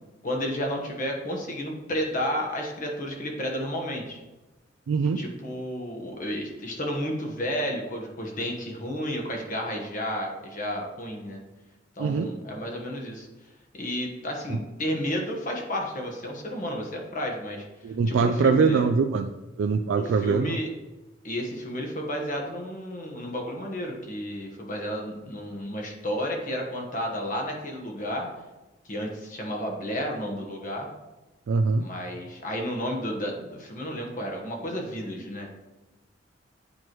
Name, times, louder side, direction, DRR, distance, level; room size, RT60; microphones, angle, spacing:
voice 1, 0.2-4.2 5.2-11.4 12.0-13.3 13.8-17.7 18.1-18.9 19.9-20.7 21.2-28.3 28.8-30.9 31.8-35.5, equal, 45° left, 1 dB, 1.3 m, -32 dB
voice 2, 4.9-5.2 12.0-12.3 17.8-19.3 19.6-20.6 31.5-31.9, right 5 dB, 90° right, 6 dB, 0.3 m, -23 dB
9.4 x 4.6 x 3.1 m, 1.1 s
head